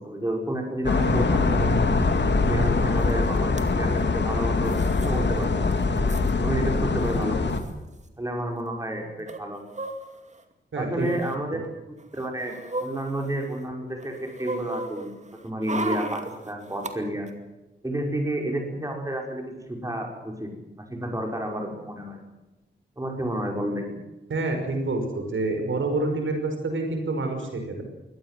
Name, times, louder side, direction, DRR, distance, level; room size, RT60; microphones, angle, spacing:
voice 1, 0.0-1.8 2.5-4.7 5.0-5.7 5.9-7.5 8.2-9.6 10.8-12.5 12.8-15.1 15.4-17.3 17.8-19.4 19.7-22.2 23.0-23.9, right 1 dB, 15° right, 2 dB, 5.6 m, -31 dB
sound 1, 0.8-7.6, left 3 dB, 65° left, 2.6 m, -23 dB
sound 2, 3.1-3.2 3.4-3.7 4.7-5.1 5.4-5.5 5.7-6.3 7.2-7.3 7.5-7.7 9.3-10.4 11.0-11.4 12.0-13.6 14.0-16.9 17.3-17.4, right 2 dB, 35° right, 2.6 m, -35 dB
voice 2, 10.7-11.1 24.3-27.8, right 2 dB, 85° right, 5 dB, 5.6 m, -27 dB
23.5 x 18.5 x 7.7 m, 1.0 s
wide cardioid pair, 105°, 20 cm